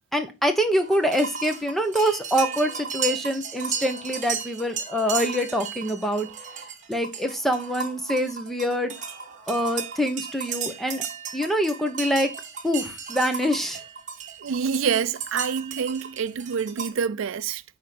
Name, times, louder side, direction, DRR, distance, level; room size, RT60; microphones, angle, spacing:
voice 1, 0.1-6.3 6.9-8.9 9.5-11.0 11.3-12.3 12.6-13.8, equal, ahead, 1.1 m, -25 dB
sound 1, 0.8-16.9, right 7 dB, 40° right, 1.7 m, -34 dB
voice 2, 14.4-17.6, right 6 dB, 80° right, 0.4 m, -27 dB
10.5 x 3.8 x 6.0 m
head